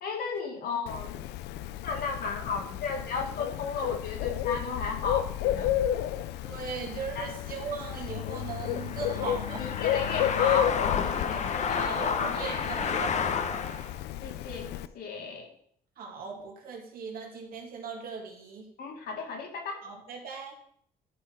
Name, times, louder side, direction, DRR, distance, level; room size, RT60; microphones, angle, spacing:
voice 1, 0.0-1.2 1.8-5.7 7.2-7.3 9.3-12.6 12.9-13.4 14.2-15.5 18.8-19.8, left 4 dB, 65° left, 2 dB, 2.1 m, -35 dB
Bird, 0.9-14.9, left 11 dB, 85° left, 0.5 m, -32 dB
voice 2, 6.4-9.6 11.4-13.6 16.0-18.6 19.8-20.6, right 5 dB, 60° right, 1 dB, 2.3 m, -39 dB
sound 1, 6.8-14.0, left 6 dB, 45° left, 0.8 m, -32 dB
12.0 x 4.5 x 4.6 m, 0.65 s
cardioid pair, 110°, 17 cm